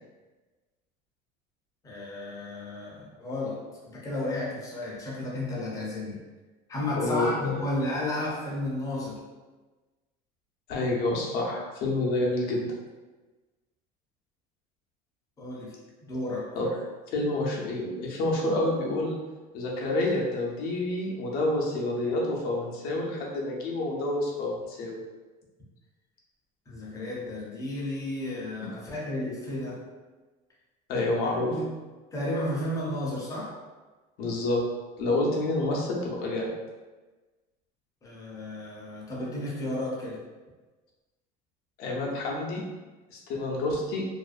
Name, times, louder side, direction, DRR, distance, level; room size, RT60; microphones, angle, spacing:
voice 1, 1.8-6.2 6.7-9.2 15.4-15.7 16.1-16.5 26.7-29.8 31.5-31.7 32.1-33.6 38.0-40.2, left 1 dB, 20° left, -5 dB, 0.6 m, -33 dB
voice 2, 6.9-7.3 10.7-12.7 16.6-16.7 17.1-19.2 19.5-25.0 30.9-31.5 34.2-34.6 35.0-36.5 41.8-42.6 43.1-44.1, left 2 dB, 55° left, -2 dB, 0.6 m, -28 dB
2.4 x 2.1 x 2.4 m, 1.2 s
cardioid pair, 140°, 19 cm